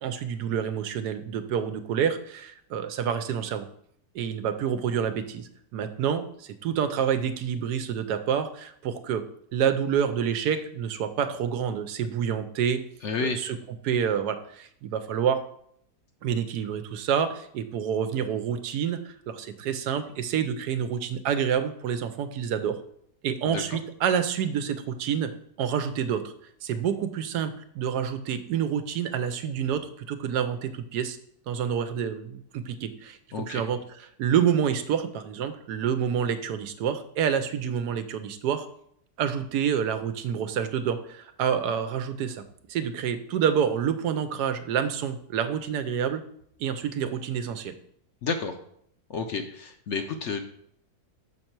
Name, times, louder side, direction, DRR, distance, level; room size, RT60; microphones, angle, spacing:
voice 1, 0.0-3.7 4.1-9.2 9.5-12.8 13.2-13.6 13.8-15.4 16.2-22.8 23.2-25.3 25.6-26.3 26.6-31.2 31.5-33.8 34.2-38.7 39.2-42.4 42.7-46.2 46.6-47.7, right 8 dB, 90° right, 9 dB, 1.2 m, -28 dB
voice 2, 13.0-13.5 23.4-23.8 33.3-33.6 48.2-48.5 49.1-50.4, left 5 dB, 65° left, 6 dB, 0.8 m, -31 dB
6.4 x 5.4 x 4.5 m, 0.68 s
omnidirectional pair, 1.7 m